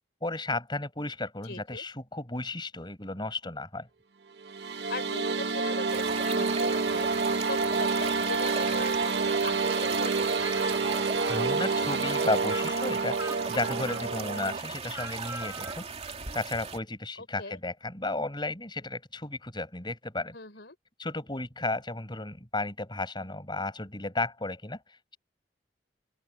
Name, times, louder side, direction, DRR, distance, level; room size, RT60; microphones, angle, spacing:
voice 1, 0.2-3.9 11.3-20.3 21.0-25.2, left 2 dB, 25° left, 6.8 m, -34 dB
voice 2, 1.4-1.8 4.9-9.1 9.4-10.4 17.2-17.6 20.3-20.7, left 3 dB, 70° left, 4.9 m, -40 dB
sound 1, 4.4-14.6, right 4 dB, 65° right, 0.9 m, -28 dB
sound 2, 5.9-16.8, right 5 dB, 35° right, 2.7 m, -38 dB
Speech, 10.4-15.9, right 2 dB, 15° right, 3.6 m, -42 dB
open air
head